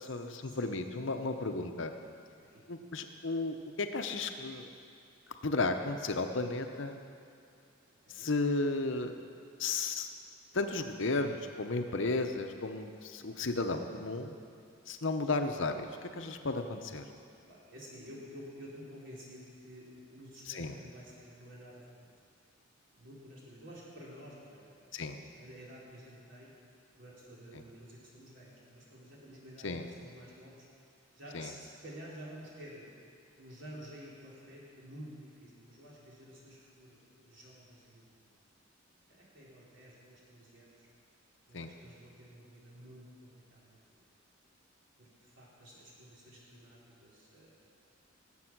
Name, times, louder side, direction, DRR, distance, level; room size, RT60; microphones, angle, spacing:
voice 1, 0.0-1.9 2.7-4.7 5.4-7.0 8.1-9.1 9.6-10.1 10.5-14.4 14.9-15.9 16.1-17.0 20.5-20.7 24.9-25.2 29.6-29.8 31.3-31.5 41.5-41.7, left 3 dB, 65° left, 6 dB, 0.8 m, -34 dB
voice 2, 7.9-8.3 13.9-14.0 17.5-22.1 22.9-26.5 27.0-30.7 31.1-32.9 33.4-38.3 39.1-40.9 41.5-43.8 45.0-47.7, equal, 65° right, -6 dB, 3.9 m, -51 dB
19.0 x 8.0 x 6.0 m, 2.4 s
head